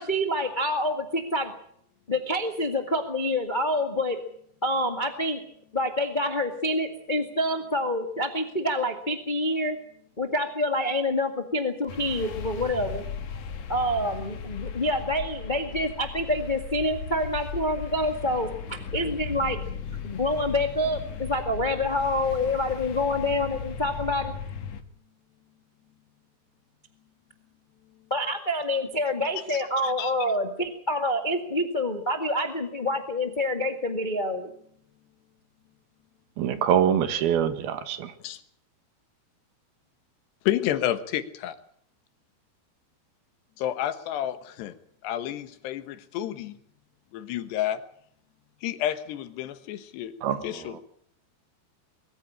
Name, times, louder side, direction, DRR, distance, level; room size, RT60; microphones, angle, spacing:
voice 1, 0.0-1.5 2.1-4.2 4.6-5.4 5.7-9.8 10.2-13.0 13.7-19.6 20.0-24.3 28.1-34.5, left 1 dB, 35° left, 0.8 m, -27 dB
sound 1, 11.9-24.8, left 6 dB, 55° left, 2.1 m, -37 dB
voice 2, 29.8-30.1 38.2-38.4 40.5-41.6 43.6-44.8 45.0-46.6 47.1-47.8 48.6-50.1 50.4-50.8, left 12 dB, 85° left, 3.5 m, -30 dB
voice 3, 36.4-38.1 50.2-50.4, right 9 dB, 70° right, 3.3 m, -24 dB
22.5 x 14.5 x 8.8 m
omnidirectional pair, 4.7 m